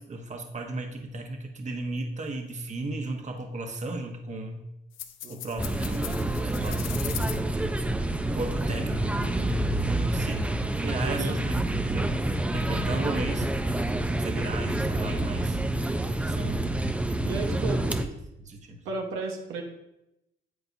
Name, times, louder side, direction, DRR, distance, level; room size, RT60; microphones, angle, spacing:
voice 1, 0.0-4.7 5.3-7.7 8.3-11.5 11.8-12.1 12.5-13.5 14.2-15.6 16.2-17.0 17.6-18.1 18.4-18.9, right 2 dB, 35° right, 3 dB, 1.2 m, -35 dB
sound 1, 4.9-7.4, left 11 dB, 90° left, 0.6 m, -39 dB
sound 2, 5.6-18.0, right 1 dB, 5° right, 0.6 m, -28 dB
voice 2, 10.8-11.4 16.4-16.7 17.2-17.8 18.8-19.6, right 3 dB, 90° right, 1 dB, 1.2 m, -34 dB
9.6 x 7.8 x 2.7 m, 0.88 s
cardioid pair, 90°, 20 cm